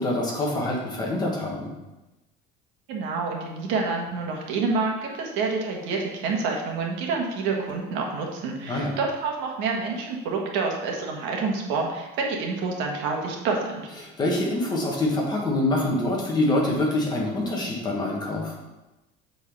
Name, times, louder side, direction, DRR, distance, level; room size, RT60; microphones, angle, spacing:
voice 1, 0.0-1.7 8.6-8.9 14.0-18.5, left 1 dB, 20° left, -2 dB, 1.3 m, -25 dB
voice 2, 2.9-13.9, right 4 dB, 65° right, 0 dB, 1.5 m, -28 dB
7.5 x 3.9 x 5.4 m, 1.0 s
cardioid pair, 170°, 21 cm